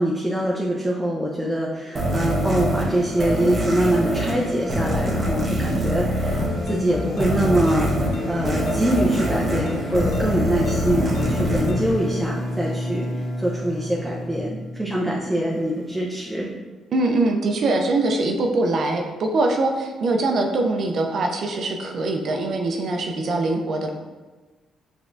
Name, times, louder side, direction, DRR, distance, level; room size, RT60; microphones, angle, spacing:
voice 1, 0.0-7.9 8.2-16.5, right 1 dB, 5° right, -4 dB, 0.6 m, -24 dB
sound 1, 1.9-12.7, equal, 35° right, 1.2 m, -25 dB
sound 2, 6.2-11.9, left 5 dB, 85° left, 0.4 m, -31 dB
Bowed string instrument, 10.6-15.3, left 1 dB, 65° left, 0.8 m, -31 dB
voice 2, 16.9-23.9, right 2 dB, 60° right, 3 dB, 0.5 m, -23 dB
5.2 x 3.5 x 2.5 m, 1.3 s
cardioid pair, 90°, 0 cm